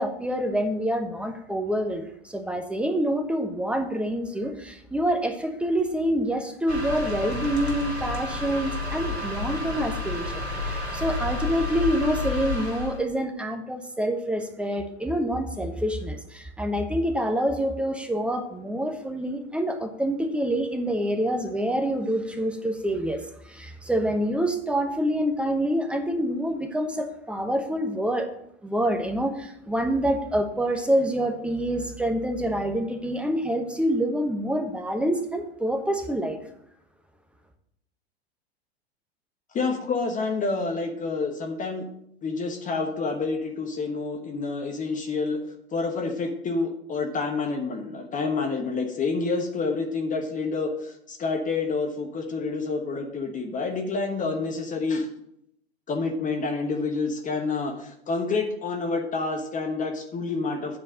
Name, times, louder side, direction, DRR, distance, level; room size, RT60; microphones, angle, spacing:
voice 1, 0.0-28.3 28.6-36.4, equal, 5° right, 6 dB, 1.0 m, -27 dB
sound 1, 6.7-13.0, left 2 dB, 85° right, 1.8 m, -30 dB
voice 2, 39.5-41.9 42.2-45.4 45.7-55.1 55.9-60.8, left 4 dB, 25° left, 4 dB, 1.1 m, -28 dB
8.6 x 4.6 x 7.4 m, 0.75 s
figure-of-eight pair, 90°, 31 cm